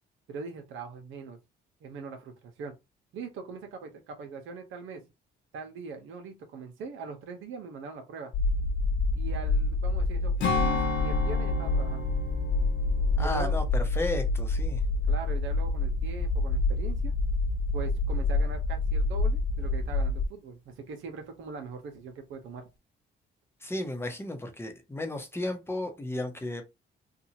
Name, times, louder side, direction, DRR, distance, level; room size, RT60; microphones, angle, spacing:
voice 1, 0.3-1.4 1.8-2.7 3.1-5.0 5.5-8.3 9.1-12.1 13.2-13.5 15.1-17.1 17.7-22.6, right 5 dB, 80° right, 0.9 m, -41 dB
sound 1, 8.3-20.2, left 2 dB, 45° left, 0.4 m, -27 dB
Strum, 10.4-15.1 15.5-15.7, left 4 dB, 70° left, 1.0 m, -34 dB
voice 2, 13.2-14.8 23.6-26.6, left 1 dB, 10° left, 0.8 m, -34 dB
2.8 x 2.4 x 2.8 m
cardioid pair, 90°, 20 cm